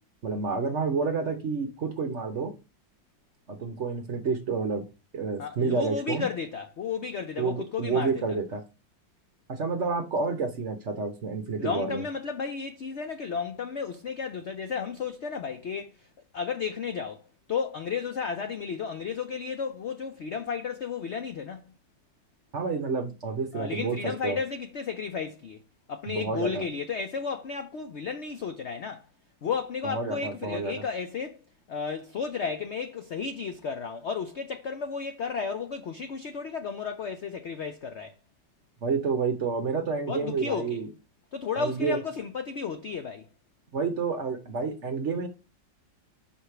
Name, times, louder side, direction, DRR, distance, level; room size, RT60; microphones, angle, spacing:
voice 1, 0.2-2.5 3.5-4.9 5.1-6.2 7.4-8.6 9.5-12.0 22.5-24.4 26.1-26.6 29.8-30.8 38.8-40.9 41.6-42.0 43.7-45.3, right 4 dB, 50° right, 0.9 m, -29 dB
voice 2, 5.4-8.4 11.6-15.9 16.3-17.2 17.5-21.6 23.5-25.6 25.9-29.0 29.4-31.4 31.7-38.1 40.1-40.8 41.3-43.3, left 6 dB, 80° left, 0.6 m, -33 dB
5.6 x 4.9 x 5.7 m
omnidirectional pair, 2.0 m